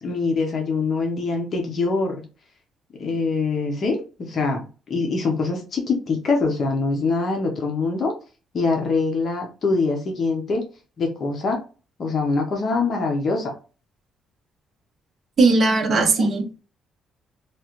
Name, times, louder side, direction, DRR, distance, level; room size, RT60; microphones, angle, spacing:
voice 1, 0.0-2.2 3.0-8.1 8.5-10.6 11.0-11.6 12.0-13.6 15.9-16.3, left 3 dB, 40° left, 0.8 m, -24 dB
voice 2, 15.4-16.6, right 3 dB, 40° right, 0.7 m, -18 dB
3.2 x 2.4 x 2.9 m
cardioid pair, 160°, 0 cm